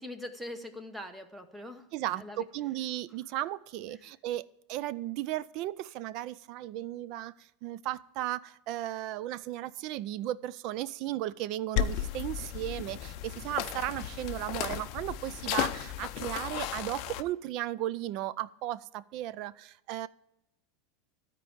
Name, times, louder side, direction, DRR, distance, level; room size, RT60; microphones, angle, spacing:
voice 1, 0.0-2.5 3.9-4.1, left 1 dB, 5° right, 8 dB, 0.9 m, -43 dB
voice 2, 1.9-4.4 4.7-20.1, right 14 dB, 45° right, 19 dB, 0.4 m, -35 dB
sound 1, 11.8-17.2, left 11 dB, 50° left, 0.5 m, -34 dB
13.0 x 4.6 x 8.6 m, 0.83 s
supercardioid pair, 150°, 0 cm